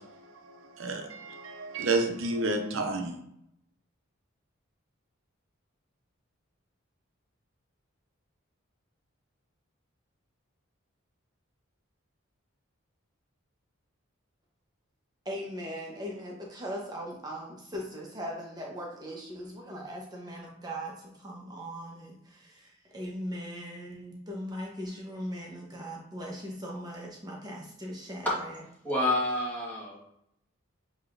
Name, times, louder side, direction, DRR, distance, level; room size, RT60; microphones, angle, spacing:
voice 1, 0.0-3.2, right 2 dB, 70° right, 4 dB, 0.7 m, -31 dB
voice 2, 15.3-28.3, equal, 20° right, -2 dB, 0.8 m, -39 dB
voice 3, 28.8-30.0, left 1 dB, 10° left, -6 dB, 1.3 m, -28 dB
7.1 x 2.8 x 2.5 m, 0.77 s
head